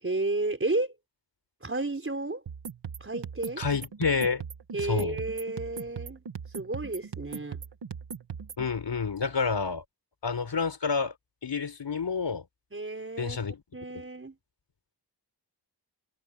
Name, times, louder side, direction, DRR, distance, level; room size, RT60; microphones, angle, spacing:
voice 1, 0.0-0.9 1.6-2.4 3.0-3.6 4.7-6.2 6.5-7.6 12.7-13.4 13.7-14.3, right 2 dB, 30° right, 4.6 m, -32 dB
sound 1, 2.5-8.7, right 6 dB, 85° right, 1.8 m, -39 dB
voice 2, 3.6-4.4 4.9-5.2 8.6-9.8 10.2-11.1 11.4-12.4 13.2-13.6, left 5 dB, 85° left, 4.9 m, -29 dB
wide cardioid pair, 105°, 41 cm